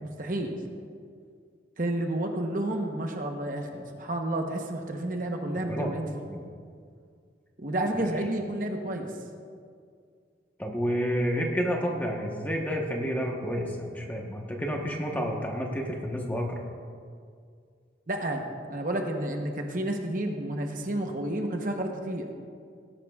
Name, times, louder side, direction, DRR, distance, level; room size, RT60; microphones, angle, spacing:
voice 1, 0.0-0.6 1.8-6.3 7.6-9.1 18.1-22.3, right 1 dB, 45° right, 3 dB, 0.9 m, -31 dB
voice 2, 10.6-16.6, equal, 10° left, 0 dB, 1.1 m, -30 dB
18.5 x 11.5 x 2.4 m, 2.2 s
head